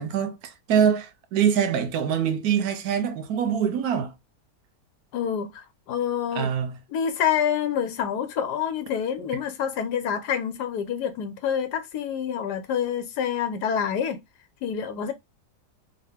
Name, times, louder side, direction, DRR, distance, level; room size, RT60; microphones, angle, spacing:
voice 1, 0.0-4.1 6.3-6.8, right 8 dB, 75° right, 1.1 m, -24 dB
voice 2, 5.1-6.5 6.9-14.2 14.6-15.1, left 8 dB, 80° left, 1.3 m, -27 dB
3.8 x 2.3 x 3.4 m
omnidirectional pair, 1.7 m